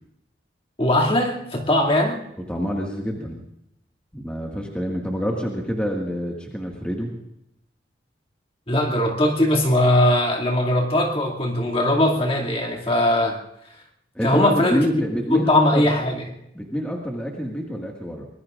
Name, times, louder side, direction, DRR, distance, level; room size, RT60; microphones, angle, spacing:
voice 1, 0.8-2.2 8.7-13.4 14.2-14.9 15.3-16.2, left 1 dB, 30° left, -1 dB, 2.4 m, -20 dB
voice 2, 2.5-3.4 4.1-7.1 14.2-15.9 16.5-18.3, equal, 5° left, -1 dB, 1.8 m, -27 dB
24.5 x 21.0 x 2.5 m, 0.79 s
head